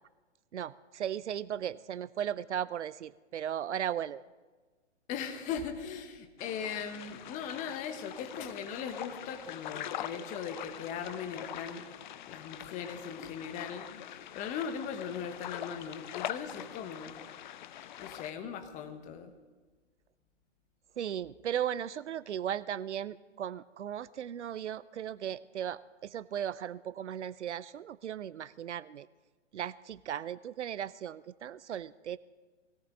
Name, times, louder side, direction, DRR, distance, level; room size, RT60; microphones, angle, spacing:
voice 1, 0.5-4.2 21.0-29.1 29.5-32.2, right 9 dB, 70° right, 19 dB, 0.6 m, -36 dB
voice 2, 5.1-11.9 12.3-13.9 14.3-17.2 18.0-19.3, left 7 dB, 20° left, 7 dB, 1.3 m, -39 dB
sound 1, 6.4-18.3, left 11 dB, 40° left, 0.7 m, -43 dB
21.0 x 17.5 x 3.9 m, 1.3 s
hypercardioid pair, 130°, 36 cm